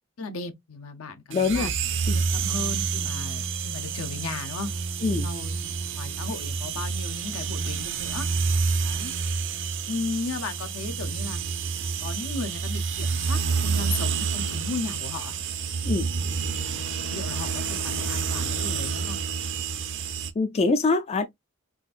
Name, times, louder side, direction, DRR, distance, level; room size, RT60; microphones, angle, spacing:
voice 1, 0.2-1.7 2.1-4.7 5.2-8.3 8.8-9.1 9.9-11.4 11.8-15.4 16.6-19.2, left 3 dB, 70° left, 0.6 m, -36 dB
voice 2, 1.3-1.7 2.1-2.2 5.0-5.3 15.9-16.1 20.4-21.2, left 3 dB, 30° left, 0.3 m, -24 dB
sound 1, 1.3-20.3, right 5 dB, 55° right, 0.5 m, -28 dB
3.8 x 2.5 x 2.4 m
head